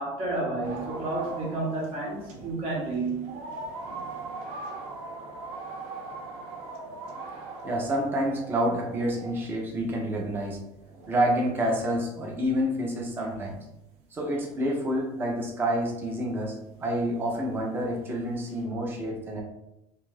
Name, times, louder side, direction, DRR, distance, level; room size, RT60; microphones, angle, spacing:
voice 1, 0.0-3.3, right 2 dB, 50° right, -3 dB, 1.0 m, -30 dB
sound 1, 0.6-12.5 13.4-13.5 13.7-13.8 14.3-14.4 14.9-15.1 15.5-15.6 15.7-16.4 16.7-18.7, right 3 dB, 70° right, 0.6 m, -41 dB
voice 2, 7.6-10.6 11.1-13.6 14.1-19.4, equal, 20° right, 0 dB, 0.4 m, -28 dB
2.6 x 2.3 x 3.2 m, 0.89 s
cardioid pair, 180°, 12 cm